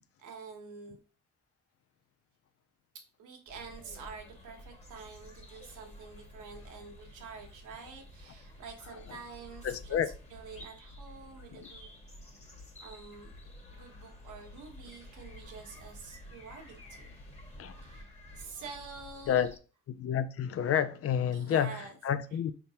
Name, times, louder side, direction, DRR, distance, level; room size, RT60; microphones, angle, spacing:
voice 1, 0.2-1.0 2.9-10.0 10.3-12.0 12.8-13.3 13.7-17.1 17.8-19.5 21.3-21.9, right 5 dB, 80° right, 1.2 m, -47 dB
sound 1, 3.5-19.6, left 1 dB, 20° left, 1.4 m, -51 dB
voice 2, 9.6-10.1 11.5-11.7 17.6-17.7 19.3-19.5 19.9-22.5, left 9 dB, 50° left, 0.5 m, -30 dB
4.5 x 3.6 x 2.8 m
cardioid pair, 90°, 30 cm